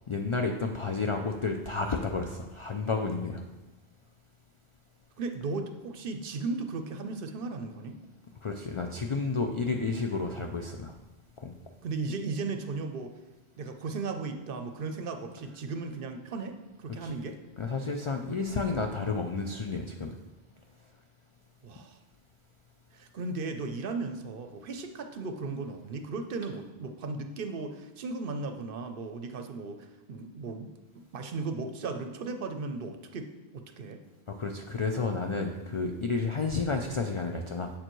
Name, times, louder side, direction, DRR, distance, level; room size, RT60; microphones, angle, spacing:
voice 1, 0.1-3.4 8.4-11.0 11.4-11.5 17.0-17.1 17.6-20.2 34.3-37.7, left 4 dB, 55° left, 4 dB, 0.3 m, -31 dB
voice 2, 5.2-8.0 11.8-13.1 13.6-17.4 21.6-22.0 22.9-34.0, right 3 dB, 60° right, 6 dB, 0.7 m, -36 dB
7.4 x 6.7 x 3.0 m, 1.1 s
omnidirectional pair, 1.1 m